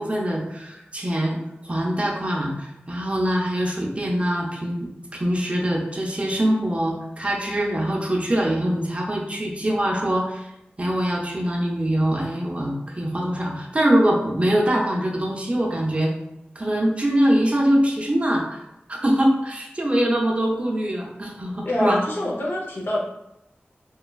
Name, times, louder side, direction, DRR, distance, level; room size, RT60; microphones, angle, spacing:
voice 1, 0.0-10.5 10.8-16.1 16.6-18.6 18.9-22.0, right 1 dB, 30° right, -1 dB, 0.5 m, -23 dB
voice 2, 21.6-23.0, left 1 dB, 60° left, -3 dB, 0.6 m, -25 dB
3.0 x 2.2 x 2.2 m, 0.84 s
wide cardioid pair, 60°, 4 cm